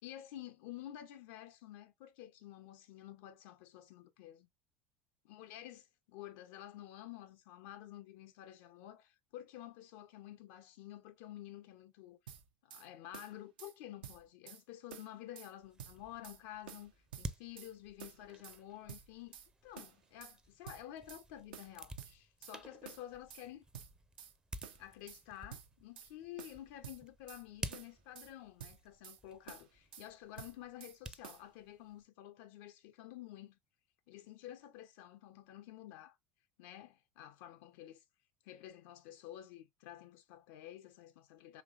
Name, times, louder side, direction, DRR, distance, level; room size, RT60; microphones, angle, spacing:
voice 1, 0.0-4.5 5.2-5.8 6.1-12.2 12.6-19.4 19.6-23.6 24.8-33.6 34.1-36.2 36.6-38.0 38.4-41.6, left 13 dB, 60° left, 0.4 m, -51 dB
sound 1, 12.3-12.9 13.1-13.7 14.0-14.6 14.9-15.5 15.8-16.4 16.7-17.7 18.0-18.6 18.9-19.5 19.8-20.4 20.7-21.2 21.5-22.6 22.8-23.5 23.7-24.3 24.6-25.2 25.5-26.1 26.4-27.4 27.7-28.3 28.6-29.2 29.5-30.1 30.4-31.0 31.2-31.5, right 8 dB, 70° right, 0.6 m, -51 dB
sound 2, 15.6-32.1, right 2 dB, 15° right, 0.5 m, -52 dB
5.0 x 3.2 x 2.4 m
figure-of-eight pair, 70°, 5 cm